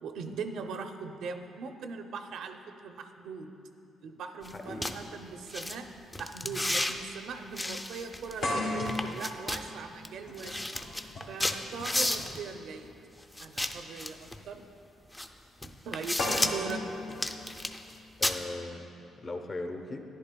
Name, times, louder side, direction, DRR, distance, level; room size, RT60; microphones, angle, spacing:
voice 1, 0.0-3.5 4.0-5.9 6.2-10.7 11.3-12.9 13.4-14.6 15.6-16.8, right 5 dB, 75° right, 6 dB, 0.5 m, -40 dB
sound 1, 4.4-4.5 4.8-4.9 5.5-5.8 6.1-6.9 7.6-8.5 8.9-9.6 10.1-10.2 10.4-12.4 13.4-14.4 15.1-15.3 15.6-16.7 17.1-17.9 18.2-18.4, left 1 dB, 15° left, 0.4 m, -32 dB
voice 2, 4.5-5.0 16.6-16.7 17.7-17.8 18.2-18.9 19.2-20.0, left 2 dB, 35° left, 5 dB, 0.8 m, -39 dB
sound 2, 6.4-6.6 7.0-7.1 8.4-12.4 13.6-13.8 16.2-18.2, left 2 dB, 75° left, 2.0 m, -36 dB
11.0 x 10.5 x 2.2 m, 2.7 s
cardioid pair, 90°, 0 cm